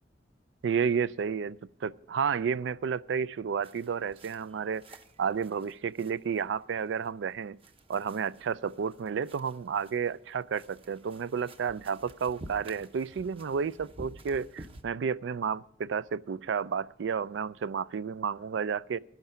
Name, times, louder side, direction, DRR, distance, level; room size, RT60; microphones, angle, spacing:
voice 1, 0.6-4.8 5.2-7.6 7.9-19.0, right 6 dB, 85° right, 0.4 m, -31 dB
sound 1, 3.6-14.8, right 1 dB, 30° right, 0.8 m, -52 dB
11.5 x 10.5 x 5.5 m
head